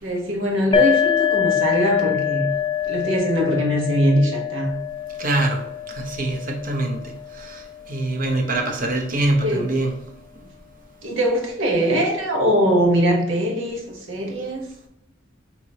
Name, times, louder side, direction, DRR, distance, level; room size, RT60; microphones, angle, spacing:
voice 1, 0.0-2.5 2.9-4.8 9.4-9.7 11.0-14.6, equal, 85° right, 0 dB, 1.2 m, -21 dB
sound 1, 0.7-8.2, left 9 dB, 25° left, 0.4 m, -25 dB
voice 2, 5.2-5.6 5.9-9.9, right 2 dB, 45° right, 2 dB, 0.9 m, -24 dB
5.8 x 3.0 x 2.8 m, 0.79 s
head